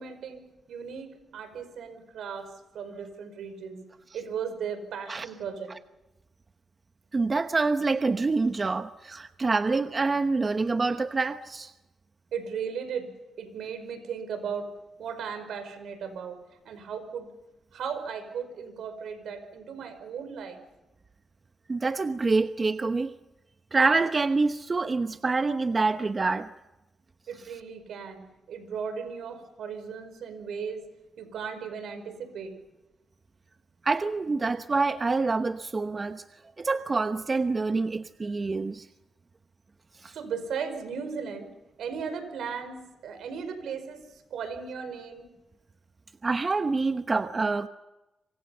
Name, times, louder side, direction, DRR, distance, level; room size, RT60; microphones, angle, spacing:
voice 1, 0.0-2.5 2.7-3.8 4.1-5.7 12.3-13.1 13.4-14.7 15.0-16.4 16.6-17.3 17.7-20.6 27.3-28.2 28.5-30.8 31.2-32.5 40.1-41.5 41.8-45.3, right 6 dB, 85° right, 9 dB, 5.0 m, -36 dB
voice 2, 7.1-11.7 21.7-23.1 23.7-26.5 33.8-36.2 36.6-38.9 40.0-40.1 46.2-47.7, right 3 dB, 40° right, 9 dB, 1.0 m, -26 dB
27.0 x 26.0 x 5.7 m, 1.0 s
supercardioid pair, 55°, 0 cm